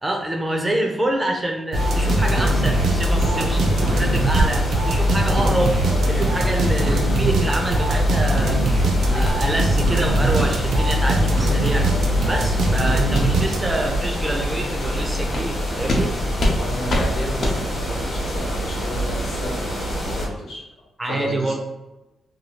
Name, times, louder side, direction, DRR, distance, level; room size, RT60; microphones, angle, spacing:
voice 1, 0.0-5.8 6.1-8.6 9.1-11.9 12.3-16.1 21.0-21.5, right 1 dB, 15° right, 2 dB, 0.4 m, -26 dB
sound 1, 1.7-20.3, equal, 40° left, 1.0 m, -26 dB
sound 2, 1.7-14.0, right 1 dB, 75° right, 0.5 m, -21 dB
voice 2, 8.9-9.3 16.5-20.6 21.1-21.5, left 1 dB, 75° left, -3 dB, 1.0 m, -32 dB
sound 3, 9.2-9.4 9.8-9.9 10.3-10.5 10.9-11.0 11.5-11.6 12.0-12.2 12.6-12.8 13.1-13.2 13.7-13.8 14.2-14.4 14.8-14.9 15.3-15.5 15.9-16.0 16.4-16.6 16.9-17.0 17.4-17.6, left 1 dB, 55° left, 0.5 m, -25 dB
2.8 x 2.2 x 3.1 m, 1.0 s
wide cardioid pair, 150°, 0 cm